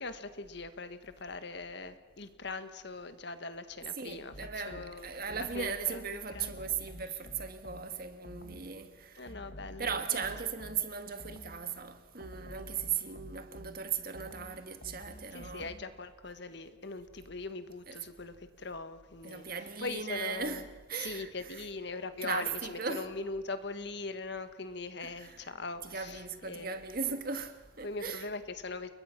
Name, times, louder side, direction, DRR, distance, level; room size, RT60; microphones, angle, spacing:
voice 1, 0.0-4.3 4.6-6.5 9.2-10.3 15.3-19.5 19.8-20.6 21.0-26.8 27.8-28.9, left 3 dB, 60° left, 1.6 m, -41 dB
voice 2, 4.0-9.3 9.8-15.7 17.9-18.0 19.2-21.7 22.2-23.1 25.0-25.4 25.8-28.3, right 6 dB, 50° right, 1.7 m, -38 dB
sound 1, 4.3-5.8 6.3-8.8 9.3-11.7 12.2-16.0, left 1 dB, 85° left, 2.2 m, -50 dB
30.0 x 22.0 x 6.0 m
head